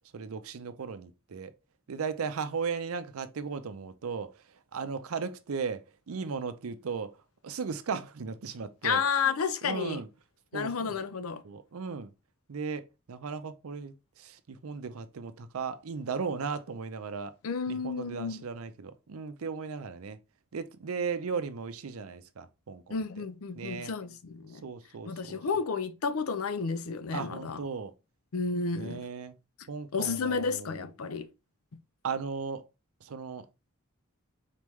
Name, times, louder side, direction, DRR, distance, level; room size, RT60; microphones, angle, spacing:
voice 1, 0.1-1.5 1.9-4.3 4.7-7.1 7.4-9.0 9.6-10.1 10.5-10.9 11.4-12.1 12.5-17.3 17.7-20.2 20.5-23.0 23.5-23.9 24.6-25.4 27.1-27.9 28.7-29.4 29.7-30.9 32.0-32.6 33.0-33.5, right 5 dB, 80° right, 0.5 m, -36 dB
voice 2, 8.8-10.0 10.5-11.4 17.4-18.4 22.9-24.6 25.1-27.6 28.3-29.0 29.9-31.3, left 5 dB, 80° left, 0.5 m, -31 dB
4.2 x 3.1 x 3.5 m
head